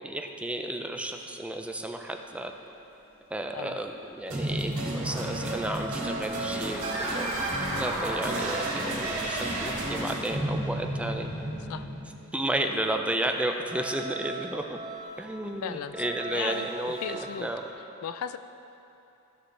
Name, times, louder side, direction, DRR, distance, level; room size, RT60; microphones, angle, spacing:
voice 1, 0.0-2.5 3.3-7.4 7.7-11.3 12.3-14.8 15.2-17.6, right 1 dB, 5° right, 4 dB, 0.5 m, -32 dB
sound 1, 1.7-10.1 13.5-17.7, right 2 dB, 25° right, 1.9 m, -41 dB
sound 2, 4.3-12.5, right 1 dB, 70° right, 2.4 m, -32 dB
sound 3, 4.8-10.1, right 1 dB, 40° right, 1.7 m, -37 dB
voice 2, 15.6-16.0 16.3-16.7 17.0-17.5 18.0-18.4, left 8 dB, 70° left, 11 dB, 0.4 m, -35 dB
15.5 x 6.6 x 3.3 m, 2.9 s
head